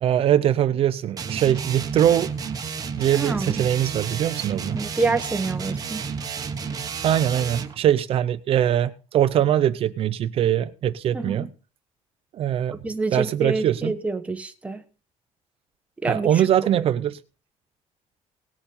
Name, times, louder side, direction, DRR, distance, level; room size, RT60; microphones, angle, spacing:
voice 1, 0.0-2.3 2.9-4.8 7.0-11.5 12.3-12.8 13.1-13.9 16.1-17.2, right 10 dB, 50° right, 0.7 m, -22 dB
sound 1, 1.2-7.8, right 6 dB, 30° right, 1.3 m, -31 dB
voice 2, 3.1-3.7 4.7-6.1 11.1-11.5 12.8-14.8 16.0-16.5 16.7-16.8, right 3 dB, 10° right, 1.1 m, -27 dB
18.0 x 7.1 x 5.5 m
cardioid pair, 165°, 12 cm